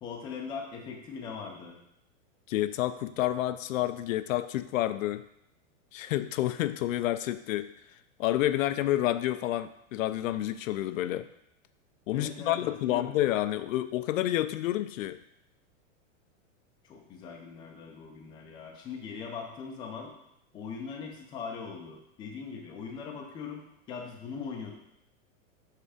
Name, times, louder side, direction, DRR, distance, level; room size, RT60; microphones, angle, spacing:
voice 1, 0.0-1.8 12.1-13.1 16.8-20.1 20.5-24.7, left 5 dB, 10° left, 1 dB, 0.4 m, -40 dB
voice 2, 2.5-5.2 5.9-7.7 8.2-11.3 12.1-15.2, left 14 dB, 75° left, 12 dB, 0.5 m, -29 dB
5.6 x 3.4 x 4.9 m, 0.77 s
supercardioid pair, 150°, 40 cm